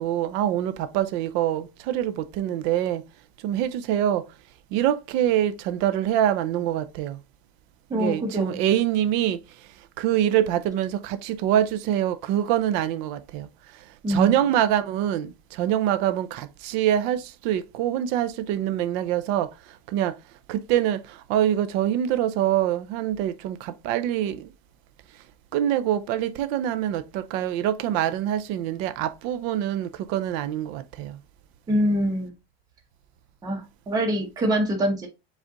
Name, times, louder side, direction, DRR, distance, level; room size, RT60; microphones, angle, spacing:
voice 1, 0.0-3.0 3.4-4.3 4.7-7.2 7.9-9.4 10.0-20.2 20.5-24.5 25.5-31.2, right 11 dB, 35° right, 0.4 m, -25 dB
voice 2, 7.9-8.6 14.0-14.3 31.7-32.3 33.4-35.1, equal, 10° right, 0.9 m, -25 dB
5.1 x 2.4 x 3.8 m
supercardioid pair, 165°, 31 cm